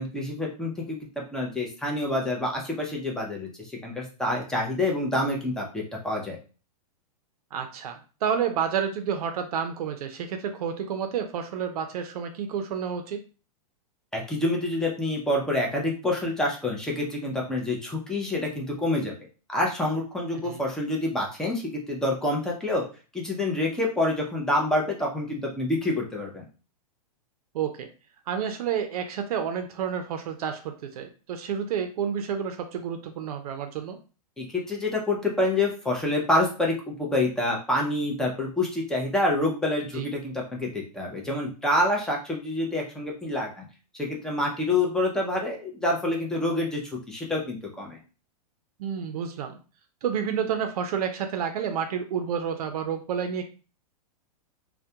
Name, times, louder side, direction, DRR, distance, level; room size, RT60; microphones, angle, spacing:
voice 1, 0.0-6.4 14.1-19.1 19.5-22.8 23.1-26.5 34.4-43.7 44.0-48.0, left 1 dB, 5° left, -1 dB, 0.5 m, -27 dB
voice 2, 7.5-13.2 20.4-20.6 27.5-27.9 28.3-34.0 39.9-40.1 48.8-49.6 50.0-53.4, right 7 dB, 70° right, 6 dB, 0.5 m, -30 dB
2.2 x 2.1 x 2.7 m, 0.35 s
hypercardioid pair, 135°, 20 cm